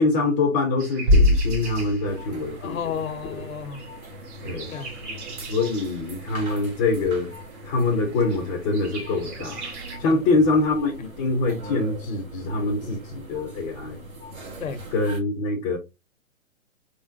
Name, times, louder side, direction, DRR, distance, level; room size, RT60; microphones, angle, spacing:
voice 1, 0.0-2.8 4.4-4.7 5.5-7.3 7.6-14.0 14.9-15.8, left 3 dB, 15° left, 0.5 m, -24 dB
sound 1, 0.8-10.0, right 3 dB, 55° right, 2.0 m, -42 dB
Bass drum, 1.1-2.8, left 1 dB, 30° right, 0.9 m, -21 dB
sound 2, 2.0-15.2, right 1 dB, 85° right, 1.8 m, -41 dB
voice 2, 2.6-3.9 4.7-5.2 10.0-10.2 14.6-14.8, left 7 dB, 80° left, 1.0 m, -33 dB
3.7 x 3.7 x 2.6 m
hypercardioid pair, 135°, 41 cm